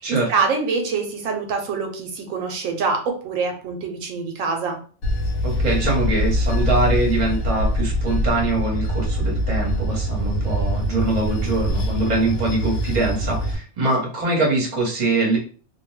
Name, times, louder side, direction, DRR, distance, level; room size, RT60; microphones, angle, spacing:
voice 1, 0.1-4.8, right 4 dB, 85° right, 4 dB, 1.0 m, -25 dB
Bell / Train, 5.0-13.5, equal, 70° left, 1.0 m, -23 dB
voice 2, 5.4-15.4, right 2 dB, 35° right, -2 dB, 1.0 m, -23 dB
2.5 x 2.1 x 3.1 m, 0.41 s
omnidirectional pair, 1.3 m